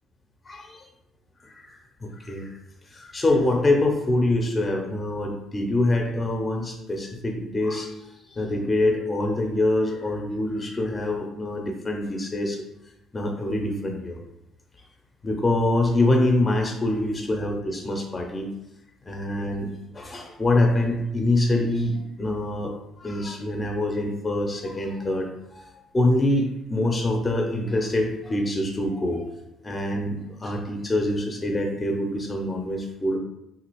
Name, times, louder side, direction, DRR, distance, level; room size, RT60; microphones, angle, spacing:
voice 1, 0.5-0.8 1.4-1.7 2.0-2.5 2.9-7.9 8.3-12.6 13.1-14.2 15.2-18.5 19.1-19.7 19.9-25.6 25.9-29.3 29.6-33.2, left 1 dB, 25° left, 3 dB, 0.5 m, -25 dB
2.9 x 2.5 x 2.8 m, 0.88 s
figure-of-eight pair, 50°, 0 cm